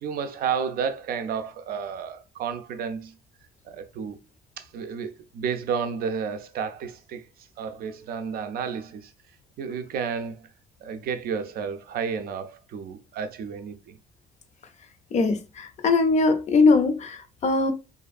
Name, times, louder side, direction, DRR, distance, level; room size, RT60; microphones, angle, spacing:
voice 1, 0.0-3.1 3.6-4.2 4.6-9.1 9.6-10.5 10.8-14.0, right 6 dB, 60° right, 0.4 m, -31 dB
voice 2, 15.1-17.7, left 3 dB, 45° left, 0.5 m, -21 dB
2.6 x 2.4 x 2.4 m
cardioid pair, 110°, 17 cm